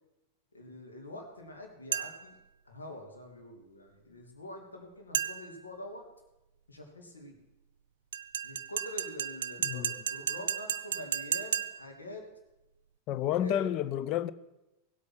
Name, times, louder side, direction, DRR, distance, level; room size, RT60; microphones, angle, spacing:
voice 1, 0.5-2.4 2.7-6.0 6.7-7.4 8.4-12.2 13.4-13.7, left 1 dB, 75° left, 2.6 m, -45 dB
sound 1, 1.9-2.4 5.1-5.7 8.1-12.0, right 8 dB, 65° right, 0.5 m, -34 dB
voice 2, 13.1-14.3, left 11 dB, 40° left, 0.5 m, -30 dB
16.5 x 8.3 x 6.2 m
figure-of-eight pair, 90°, 0 cm